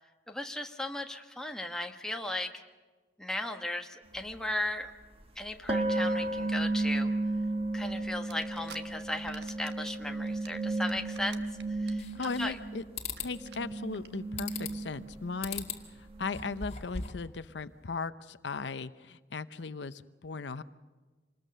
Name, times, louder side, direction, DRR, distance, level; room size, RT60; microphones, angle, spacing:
voice 1, 0.3-2.6 3.2-4.9 5.4-7.1 7.7-11.4 11.7-12.6, left 1 dB, 5° left, 3 dB, 1.3 m, -36 dB
sound 1, 4.2-4.3 5.7-13.1 13.4-17.1, right 2 dB, 30° right, 1.5 m, -34 dB
sound 2, 8.3-8.8 9.1-10.0 10.3-11.9 12.2-12.5 12.8-12.9 13.1-13.2 13.5-13.6 13.9-14.1, right 7 dB, 65° right, 1.3 m, -48 dB
sound 3, 12.0-12.6 13.0-13.3 14.4-14.9 15.4-15.8 16.2-17.3, left 6 dB, 35° left, 2.2 m, -39 dB
voice 2, 12.1-12.8 13.2-15.7 16.0-20.6, left 4 dB, 75° left, 13 dB, 0.7 m, -37 dB
26.5 x 20.0 x 6.7 m, 1.3 s
head